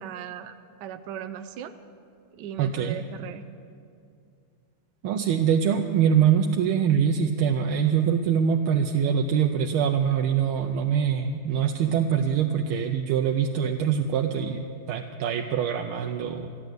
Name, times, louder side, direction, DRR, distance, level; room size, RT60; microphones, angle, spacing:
voice 1, 0.0-0.5 0.8-1.7 2.4-3.4, right 9 dB, 70° right, 7 dB, 1.1 m, -37 dB
voice 2, 2.6-3.0 5.0-16.5, right 8 dB, 90° right, 3 dB, 1.5 m, -24 dB
14.0 x 11.0 x 7.9 m, 2.3 s
omnidirectional pair, 2.3 m